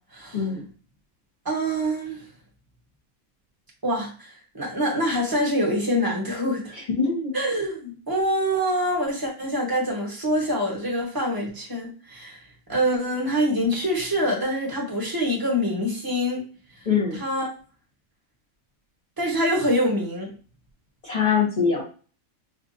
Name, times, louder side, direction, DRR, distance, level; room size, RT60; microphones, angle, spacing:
voice 1, 0.3-0.7 7.0-7.3 16.9-17.2 21.0-21.8, left 6 dB, 35° left, -6 dB, 0.9 m, -23 dB
voice 2, 1.4-2.2 3.8-6.7 7.3-12.4 12.7-16.4 17.1-17.5 19.2-20.3, equal, 15° right, -2 dB, 1.0 m, -25 dB
4.6 x 2.4 x 2.5 m, 0.37 s
omnidirectional pair, 1.5 m